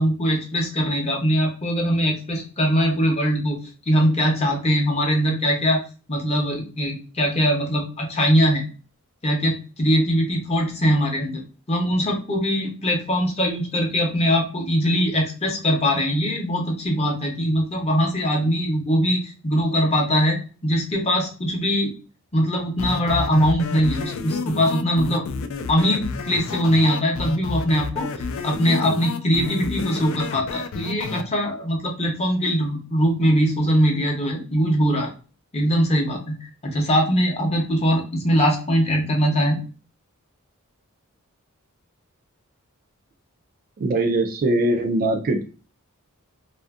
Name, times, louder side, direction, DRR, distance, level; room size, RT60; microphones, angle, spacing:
voice 1, 0.0-3.6 3.9-5.8 6.1-8.6 9.2-11.4 11.7-21.9 22.3-25.2 25.7-35.1 35.5-39.6, equal, 30° left, 0 dB, 0.6 m, -21 dB
sound 1, 22.8-31.2, left 4 dB, 60° left, 0.3 m, -30 dB
voice 2, 43.8-45.4, right 2 dB, 40° right, 5 dB, 0.3 m, -21 dB
2.5 x 2.4 x 2.3 m, 0.36 s
head